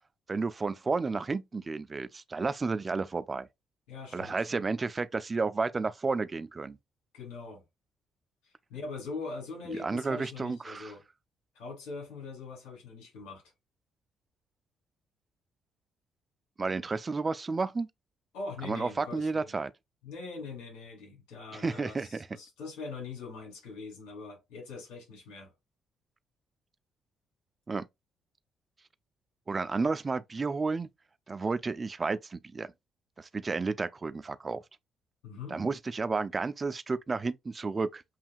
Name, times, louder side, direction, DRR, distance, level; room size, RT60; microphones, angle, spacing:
voice 1, 0.3-3.5 4.1-6.8 9.8-10.9 16.6-17.9 18.6-19.7 21.5-22.3 27.7-27.9 29.5-30.9 31.3-32.7 33.2-34.6 35.5-38.0, right 4 dB, 35° right, 0.5 m, -32 dB
voice 2, 3.9-4.6 7.1-7.6 8.4-11.0 11.5-13.4 18.3-19.5 20.0-25.5 35.2-35.6, left 4 dB, 80° left, 2.7 m, -42 dB
7.4 x 2.8 x 2.4 m
supercardioid pair, 55°, 0 cm